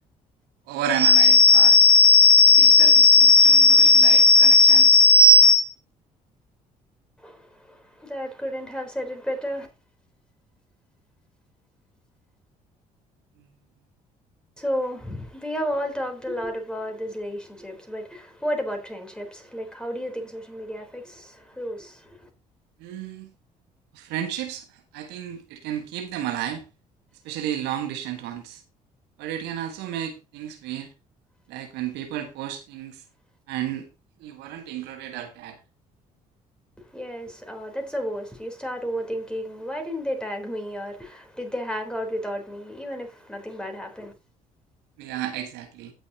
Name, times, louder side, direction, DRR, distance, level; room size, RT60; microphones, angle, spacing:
voice 1, 0.7-5.7 22.8-23.2 24.0-24.6 24.9-26.6 27.2-28.6 29.2-30.9 31.5-32.9 33.5-33.8 34.2-35.5 45.0-45.9, left 2 dB, 65° right, 1.6 m, -19 dB
voice 2, 7.2-9.7 14.6-22.3 36.8-44.1, equal, 5° left, 3.8 m, -32 dB
16.5 x 6.2 x 2.9 m
figure-of-eight pair, 50°, 19 cm